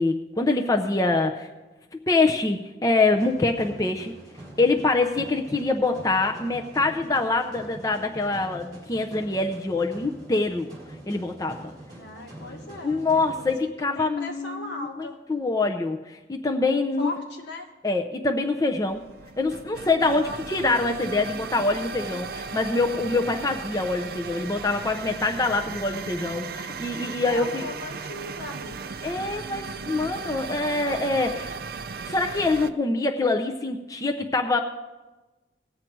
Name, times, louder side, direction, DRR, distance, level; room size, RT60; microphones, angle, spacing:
voice 1, 0.0-1.5 2.1-4.1 4.6-10.7 11.1-11.7 12.8-17.1 17.8-19.0 19.4-27.7 29.0-31.5 32.1-34.6, left 3 dB, 20° left, 3 dB, 0.6 m, -25 dB
sound 1, 3.1-13.5, right 1 dB, 25° right, 4.9 m, -44 dB
voice 2, 12.0-13.5 13.9-15.2 17.0-17.7 20.1-20.4 27.3-29.0, left 2 dB, 75° left, 2 dB, 1.7 m, -38 dB
sound 2, 18.7-32.7, right 5 dB, 55° right, 0.5 m, -36 dB
19.0 x 7.6 x 4.6 m, 1.2 s
head